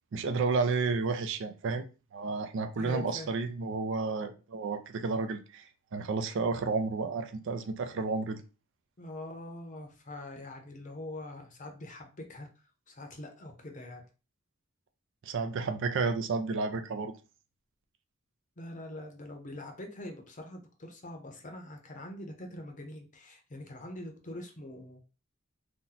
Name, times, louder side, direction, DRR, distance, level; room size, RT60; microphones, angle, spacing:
voice 1, 0.1-8.4 15.2-17.1, right 4 dB, 65° right, 0.4 m, -31 dB
voice 2, 2.8-3.3 9.0-14.0 18.6-25.0, left 1 dB, 40° left, 0.7 m, -44 dB
2.8 x 2.2 x 3.8 m
head